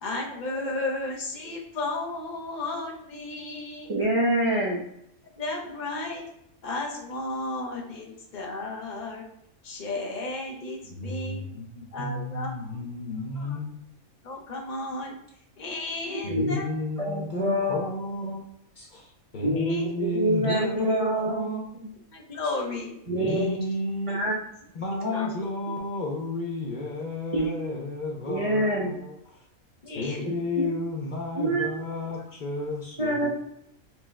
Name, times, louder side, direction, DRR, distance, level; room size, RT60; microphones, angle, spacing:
voice 1, 0.0-3.9 4.5-4.7 5.4-6.2 6.6-9.2 9.6-11.5 11.9-12.8 13.4-13.6 14.2-15.2 15.6-16.7 19.4-19.8 22.1-23.6 25.1-25.3 29.8-30.3, left 2 dB, 45° left, 0 dB, 0.7 m, -34 dB
voice 2, 3.9-4.8 16.3-16.5 17.0-17.8 19.4-21.5 23.1-23.4 24.1-24.3 25.0-25.1 27.3-27.5 28.3-29.0 30.2-30.7 31.4-31.8 33.0-33.3, right 1 dB, 60° right, -5 dB, 0.3 m, -26 dB
voice 3, 10.9-13.8 16.2-18.5 18.8-21.6 23.1-24.3 24.7-29.4 29.9-33.3, left 2 dB, 80° left, -2 dB, 0.4 m, -32 dB
4.3 x 2.1 x 3.4 m, 0.77 s
omnidirectional pair, 1.5 m